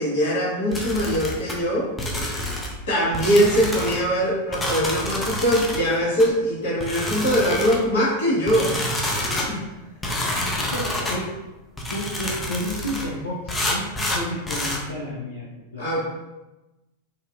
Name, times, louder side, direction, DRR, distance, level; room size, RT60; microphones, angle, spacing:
voice 1, 0.0-1.9 2.9-9.6 15.8-16.0, equal, 55° left, -7 dB, 1.4 m, -22 dB
sound 1, 0.7-1.6 2.0-2.8 3.1-4.0 4.5-5.8 6.2-6.3 6.8-7.9 8.5-9.5 10.0-11.2 11.8-13.1 13.5-14.8, left 1 dB, 15° left, 0.5 m, -28 dB
voice 2, 10.5-11.3 11.9-13.9 14.1-15.4 15.7-15.9, equal, 70° left, -6 dB, 0.6 m, -31 dB
4.0 x 2.3 x 2.5 m, 1.0 s
figure-of-eight pair, 90°, 0 cm